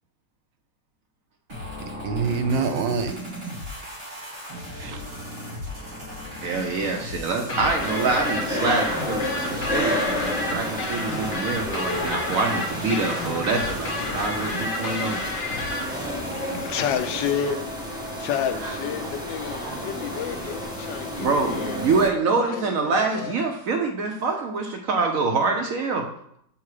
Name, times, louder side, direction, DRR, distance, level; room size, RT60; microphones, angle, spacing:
sound 1, 1.5-17.5, equal, 30° right, 2.3 m, -37 dB
voice 1, 2.0-3.2 4.8-5.0 10.5-10.6 11.1-11.2 17.5-17.6 18.6-18.7 19.7-19.9, right 5 dB, 80° right, 7 dB, 1.4 m, -27 dB
voice 2, 6.4-15.2 15.5-15.7 21.2-26.1, right 4 dB, 65° right, 3 dB, 0.9 m, -25 dB
sound 2, 7.4-22.1, left 1 dB, 5° right, 0.8 m, -31 dB
sound 3, 7.5-15.8, left 2 dB, 35° left, 1.0 m, -31 dB
voice 3, 8.9-9.7 16.3-16.4 16.7-17.8 18.2-21.8 22.3-23.3, left 8 dB, 80° left, 9 dB, 1.3 m, -30 dB
7.1 x 3.7 x 4.8 m, 0.72 s
omnidirectional pair, 2.0 m